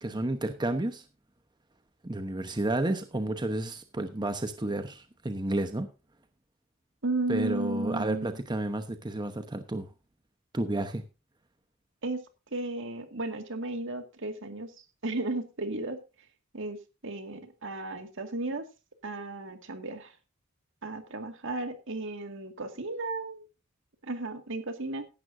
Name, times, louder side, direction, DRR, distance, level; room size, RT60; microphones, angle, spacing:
voice 1, 0.0-1.0 2.0-5.9 7.3-9.9 10.5-11.0, right 1 dB, 20° right, 1.0 m, -31 dB
voice 2, 7.0-8.4 12.0-12.2 12.5-14.8 15.0-16.0 16.5-16.8 17.0-18.7 19.0-20.1 20.8-23.4 24.0-25.1, right 2 dB, 65° right, 2.1 m, -34 dB
15.5 x 11.0 x 2.6 m
head